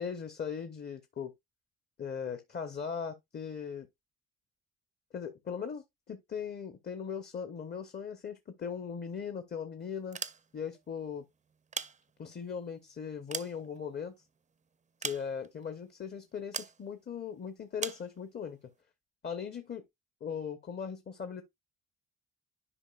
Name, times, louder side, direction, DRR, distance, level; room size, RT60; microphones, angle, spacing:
voice 1, 0.0-1.3 2.0-3.9 5.1-10.2 10.5-11.2 12.2-14.1 15.0-18.6 19.2-19.8 20.2-21.4, left 7 dB, 35° left, 0.8 m, -39 dB
sound 1, 10.0-10.8 11.5-12.5 13.0-14.2 15.0-15.6 16.5-16.8 17.8-18.1, right 6 dB, 25° right, 0.5 m, -40 dB
9.9 x 5.0 x 2.3 m
cardioid pair, 90°, 30 cm